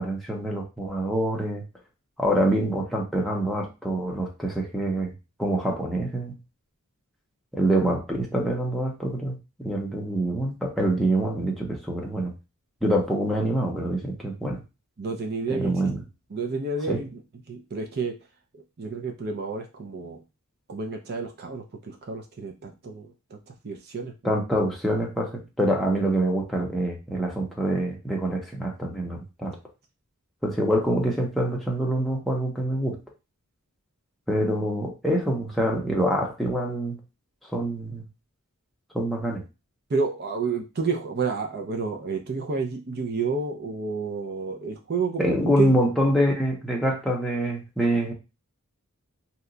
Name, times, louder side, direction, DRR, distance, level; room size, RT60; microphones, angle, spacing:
voice 1, 0.0-1.6 2.2-5.1 5.4-6.4 7.5-12.3 12.8-14.6 15.5-16.0 16.9-17.0 24.2-29.6 30.4-33.0 34.3-37.0 37.5-38.0 38.9-39.4 45.2-48.1, right 1 dB, ahead, -2 dB, 0.6 m, -25 dB
voice 2, 15.0-15.7 16.3-17.2 17.5-18.1 18.8-20.2 20.7-24.3 39.9-45.7, right 4 dB, 45° right, 3 dB, 0.5 m, -30 dB
2.8 x 2.1 x 3.7 m, 0.27 s
head